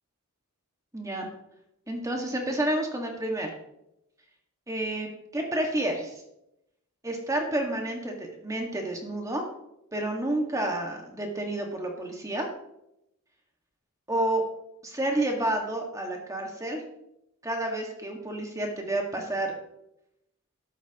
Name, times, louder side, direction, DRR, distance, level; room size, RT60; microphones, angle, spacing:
voice 1, 0.9-1.3 1.9-3.5 4.7-5.1 5.3-6.2 7.0-9.5 9.9-12.5 14.1-14.4 14.8-16.8 17.4-19.5, right 1 dB, 15° right, 2 dB, 1.9 m, -30 dB
13.5 x 11.5 x 3.0 m, 0.84 s
head